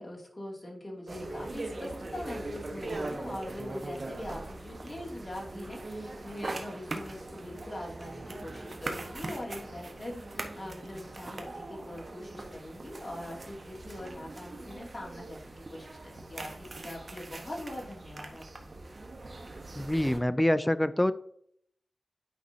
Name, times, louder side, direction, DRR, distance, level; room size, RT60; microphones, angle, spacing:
voice 1, 0.0-18.7, left 1 dB, 35° left, -2 dB, 2.6 m, -42 dB
sound 1, 1.1-20.2, right 2 dB, 55° right, 1.2 m, -41 dB
voice 2, 19.8-21.1, left 1 dB, 15° left, 14 dB, 0.4 m, -26 dB
9.2 x 5.3 x 2.8 m, 0.66 s
cardioid pair, 50°, 0 cm